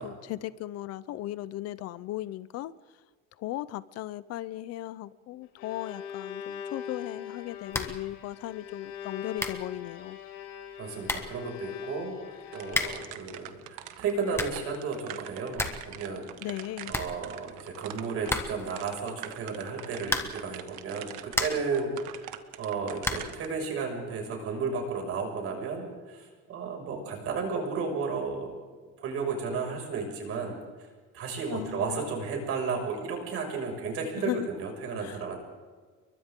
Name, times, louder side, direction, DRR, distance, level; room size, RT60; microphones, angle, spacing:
voice 1, 0.0-2.7 3.4-10.2 16.4-16.9 31.5-32.0 34.2-34.5 35.0-35.4, left 15 dB, 55° left, 0.7 m, -37 dB
Bowed string instrument, 5.3-13.4, left 8 dB, 80° left, 4.0 m, -42 dB
sound 1, 7.7-8.1 8.3-8.4 9.1-9.2 9.4-9.7 10.7-10.8 11.0-11.4 12.7-13.1 14.1-14.7 15.1-15.2 15.4-15.9 16.2-16.3 16.5-16.6 16.9-17.7 18.3-18.8 20.0-20.5 21.0-21.8 23.0-23.4, left 2 dB, 10° left, 1.3 m, -32 dB
voice 2, 10.8-16.6 16.9-28.5 28.8-30.5 31.1-35.4, right 4 dB, 45° right, 6.1 m, -33 dB
sound 2, 12.5-23.5, right 13 dB, 80° right, 1.6 m, -44 dB
30.0 x 23.0 x 3.8 m
cardioid pair, 180°, 31 cm